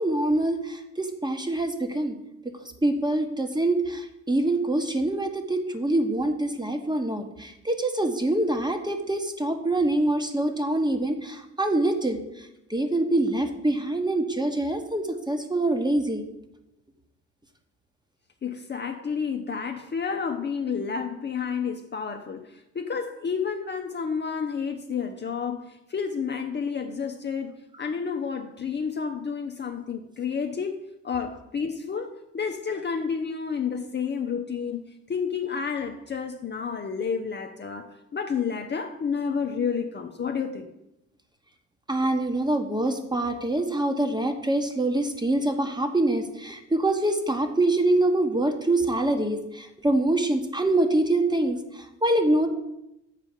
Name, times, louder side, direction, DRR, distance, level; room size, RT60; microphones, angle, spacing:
voice 1, 0.0-2.1 2.8-12.2 12.7-16.2 41.9-52.5, right 1 dB, 10° right, 6 dB, 1.4 m, -25 dB
voice 2, 18.4-30.8 31.0-34.8 35.1-40.7, left 6 dB, 30° left, 4 dB, 0.8 m, -30 dB
7.5 x 4.9 x 6.8 m, 0.86 s
hypercardioid pair, 50°, 36 cm